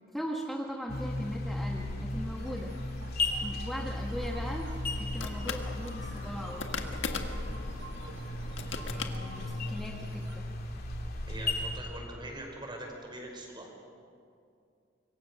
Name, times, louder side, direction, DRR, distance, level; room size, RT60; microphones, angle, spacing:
voice 1, 0.1-2.8 3.4-4.7 5.0-6.6 8.6-10.5, equal, ahead, -1 dB, 1.4 m, -39 dB
sound 1, 0.9-11.8, left 2 dB, 55° left, 2.8 m, -35 dB
sound 2, 2.4-10.4, right 2 dB, 90° right, 4.2 m, -51 dB
sound 3, 4.2-9.8, left 4 dB, 70° left, 1.7 m, -41 dB
voice 2, 11.3-13.7, right 1 dB, 25° right, 1 dB, 5.3 m, -43 dB
26.5 x 23.0 x 6.4 m, 2.4 s
head